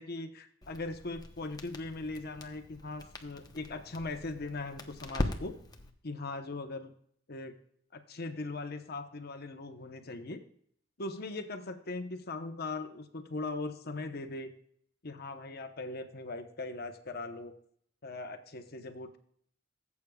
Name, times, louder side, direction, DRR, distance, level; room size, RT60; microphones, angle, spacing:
voice 1, 0.0-5.6 6.0-6.9 7.3-7.5 7.9-10.4 11.0-14.5 15.0-17.5 18.0-19.2, left 2 dB, 55° left, 7 dB, 1.0 m, -40 dB
Crackle, 0.6-5.9, left 1 dB, 20° left, 0.9 m, -41 dB
16.5 x 8.4 x 2.4 m, 0.64 s
head